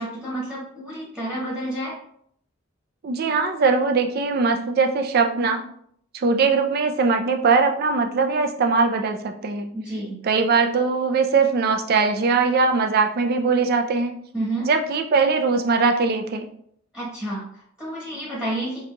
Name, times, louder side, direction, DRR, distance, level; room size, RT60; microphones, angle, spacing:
voice 1, 0.0-1.9 9.7-10.2 14.3-14.7 16.9-18.8, right 1 dB, 5° right, -7 dB, 1.3 m, -30 dB
voice 2, 3.0-5.7 6.1-9.7 10.2-14.1 14.6-16.5, right 4 dB, 50° right, 5 dB, 0.4 m, -21 dB
3.9 x 2.8 x 2.2 m, 0.67 s
head